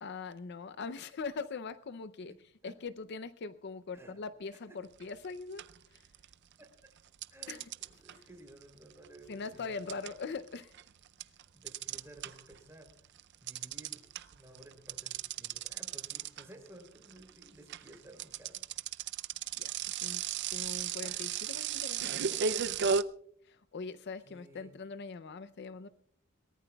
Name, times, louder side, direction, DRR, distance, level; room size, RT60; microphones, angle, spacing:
voice 1, 0.0-2.3 2.6-5.6 5.9-6.0 7.5-7.7 8.1-8.2 9.3-10.7 19.6-20.2 20.5-22.8 23.4-25.9, left 4 dB, 55° left, 14 dB, 0.5 m, -42 dB
sound 1, 5.0-5.3 5.6-6.5 7.2-12.6 12.9-23.0, right 7 dB, 55° right, 0.5 m, -35 dB
voice 2, 6.6-6.9 7.3-10.1 11.5-13.1 13.4-14.0 14.3-18.6 24.2-24.7, right 1 dB, 15° right, 4 dB, 3.2 m, -55 dB
22.5 x 18.5 x 2.3 m, 0.66 s
head